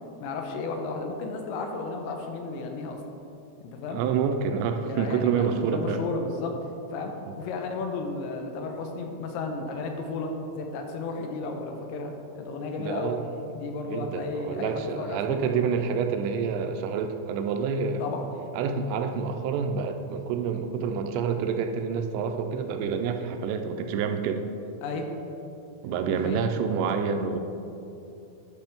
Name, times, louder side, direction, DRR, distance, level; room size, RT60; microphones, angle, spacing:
voice 1, 0.2-3.0 3.6-4.0 4.8-6.6 6.9-13.1 13.5-15.5 18.0-18.2 24.8-25.1 26.1-26.5, left 3 dB, 85° left, 3 dB, 3.0 m, -33 dB
voice 2, 3.9-6.0 7.3-7.4 12.8-13.2 13.9-18.1 18.5-24.4 25.8-27.4, right 6 dB, 85° right, 6 dB, 2.7 m, -28 dB
11.5 x 5.8 x 3.5 m, 2.8 s
omnidirectional pair, 5.2 m